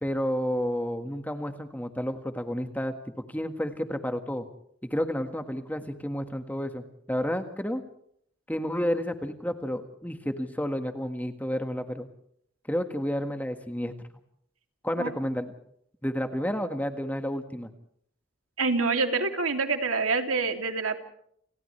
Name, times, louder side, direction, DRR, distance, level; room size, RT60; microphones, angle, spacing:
voice 1, 0.0-4.5 4.8-7.8 8.5-12.1 12.7-13.9 14.8-15.5 16.0-17.7, equal, 10° left, 7 dB, 1.6 m, -31 dB
voice 2, 18.6-21.0, right 4 dB, 90° right, 5 dB, 2.9 m, -26 dB
29.5 x 29.0 x 3.3 m, 0.68 s
head